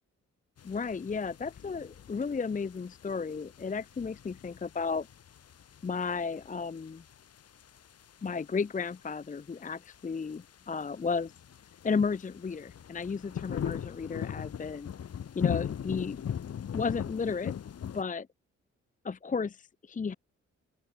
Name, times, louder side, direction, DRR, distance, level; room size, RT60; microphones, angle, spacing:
sound 1, 0.6-18.0, left 8 dB, 55° left, 1.1 m, -40 dB
voice 1, 0.6-5.1 5.8-7.0 8.2-11.3 11.8-14.9 15.3-16.2 16.7-17.5 17.9-18.3 19.0-20.1, left 5 dB, 25° left, 0.6 m, -33 dB
open air
cardioid pair, 60°, 29 cm